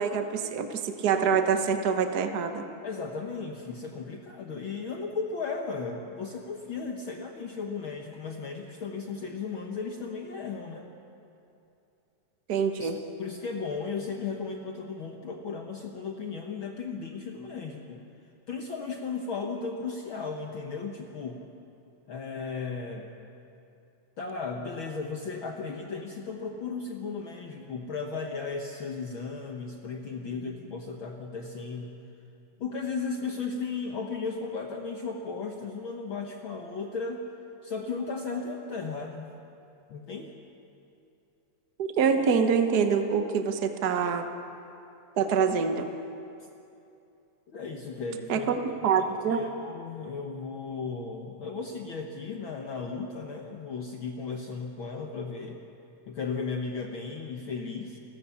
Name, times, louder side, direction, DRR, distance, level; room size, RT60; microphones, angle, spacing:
voice 1, 0.0-2.6 12.5-13.0 41.8-44.3 45.2-45.8 48.3-48.6 48.8-49.4, right 6 dB, 85° right, 7 dB, 0.8 m, -25 dB
voice 2, 2.8-10.9 12.8-12.9 13.2-18.0 18.5-21.4 22.1-23.1 24.2-31.9 32.6-37.3 37.6-39.3 39.9-40.3 47.5-55.6 56.1-58.0, left 4 dB, 55° left, 2 dB, 1.5 m, -35 dB
29.5 x 14.5 x 7.1 m, 2.7 s
omnidirectional pair, 3.5 m